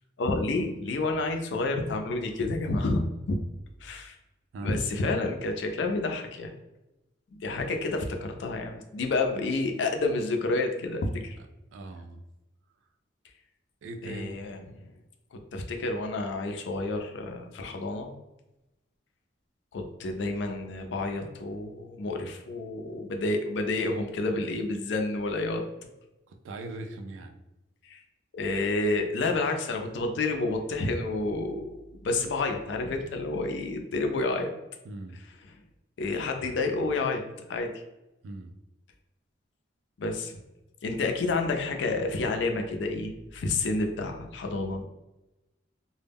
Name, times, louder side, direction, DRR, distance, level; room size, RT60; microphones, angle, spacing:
voice 1, 0.2-3.0 3.3-3.4 3.8-4.2 4.6-6.5 7.3-11.4 14.0-14.6 15.3-18.1 19.7-25.6 27.9-28.0 28.3-31.6 32.0-34.5 36.0-37.2 37.5-37.7 40.0-40.4 40.8-44.8, left 2 dB, 70° left, 4 dB, 0.4 m, -29 dB
voice 2, 11.7-12.2 13.8-14.4 26.3-27.4 34.8-35.2 38.2-38.6, right 2 dB, 90° right, 4 dB, 0.4 m, -40 dB
2.1 x 2.0 x 3.4 m, 0.98 s
head